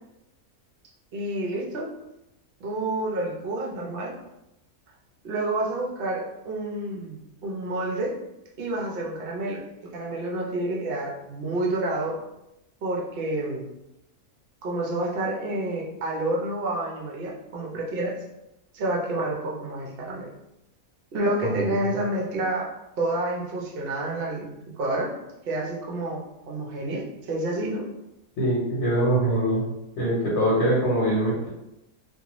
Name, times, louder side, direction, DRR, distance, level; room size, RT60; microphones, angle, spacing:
voice 1, 1.1-1.9 2.6-4.1 5.2-8.2 8.6-12.2 12.8-13.7 14.6-18.2 18.7-20.3 21.1-22.7 23.0-25.1 25.4-27.9, right 1 dB, 55° right, -2 dB, 0.6 m, -29 dB
voice 2, 28.4-29.6 30.0-31.5, right 1 dB, 55° left, -6 dB, 1.0 m, -23 dB
2.5 x 2.3 x 2.9 m, 0.91 s
omnidirectional pair, 1.5 m